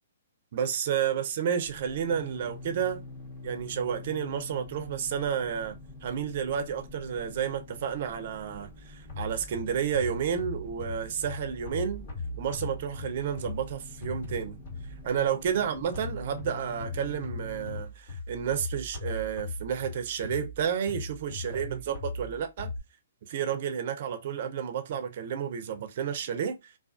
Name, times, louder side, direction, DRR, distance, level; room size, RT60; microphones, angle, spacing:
voice 1, 0.5-3.0 3.4-5.8 6.0-12.1 12.4-14.6 15.0-22.7 23.3-26.7, right 8 dB, 50° right, 0.4 m, -31 dB
sound 1, 1.6-17.8, left 2 dB, 20° left, 0.9 m, -46 dB
sound 2, 9.1-15.1 15.9-22.8, left 2 dB, 55° left, 1.3 m, -39 dB
2.3 x 2.3 x 2.3 m
hypercardioid pair, 155°, 0 cm